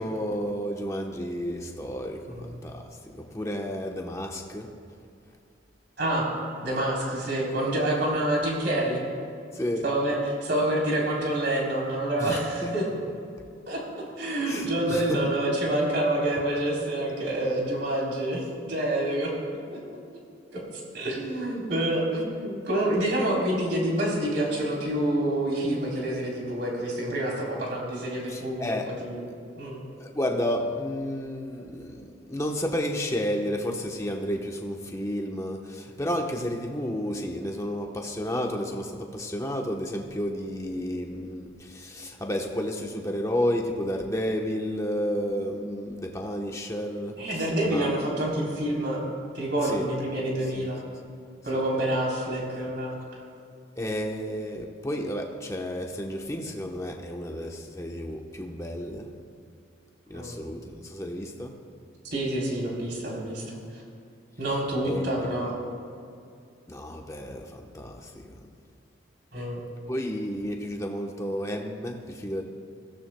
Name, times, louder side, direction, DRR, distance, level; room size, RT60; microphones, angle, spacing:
voice 1, 0.0-2.9 3.1-4.7 9.5-9.8 12.2-12.7 14.5-15.2 28.3-28.9 30.0-47.2 47.7-47.9 49.6-49.8 50.5-50.7 53.8-59.1 60.1-61.5 64.8-65.3 66.7-68.5 69.9-72.4, equal, 15° left, 2 dB, 1.0 m, -31 dB
voice 2, 2.3-2.6 6.0-6.3 6.6-9.0 9.8-12.8 13.7-13.8 14.2-19.3 19.7-19.8 20.5-29.2 29.6-29.8 47.2-49.0 49.3-50.8 51.4-53.2 60.1-60.4 62.0-63.8 64.4-65.6 69.3-69.6, right 1 dB, 55° right, -3 dB, 3.6 m, -27 dB
22.0 x 16.0 x 2.2 m, 2.4 s
head